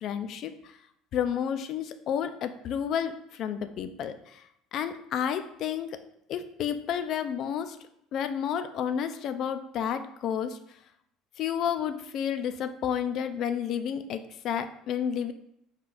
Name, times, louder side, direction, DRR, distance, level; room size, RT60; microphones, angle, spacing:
voice 1, 0.0-0.5 1.1-4.4 4.7-6.0 6.3-7.8 8.1-10.6 11.4-15.3, left 8 dB, 60° left, 10 dB, 0.4 m, -31 dB
4.5 x 2.4 x 3.9 m, 0.76 s
supercardioid pair, 85°, 0 cm